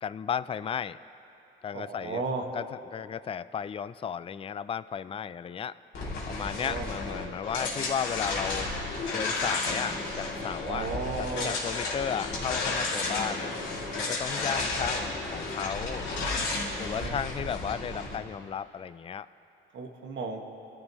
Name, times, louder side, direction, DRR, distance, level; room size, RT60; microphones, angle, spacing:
voice 1, 0.0-1.0 1.6-2.2 2.5-2.6 2.9-5.7 6.3-8.7 9.1-10.9 11.2-13.5 13.9-16.0 16.8-19.3, left 8 dB, 30° left, 14 dB, 0.4 m, -34 dB
voice 2, 1.7-2.4 6.3-6.9 10.6-11.6 14.2-14.6 16.7-17.2 19.7-20.4, right 4 dB, 65° right, 2 dB, 1.8 m, -35 dB
sound 1, 5.9-18.2, left 3 dB, 75° left, 3.1 m, -32 dB
29.0 x 13.0 x 3.1 m, 2.9 s
cardioid pair, 90°, 20 cm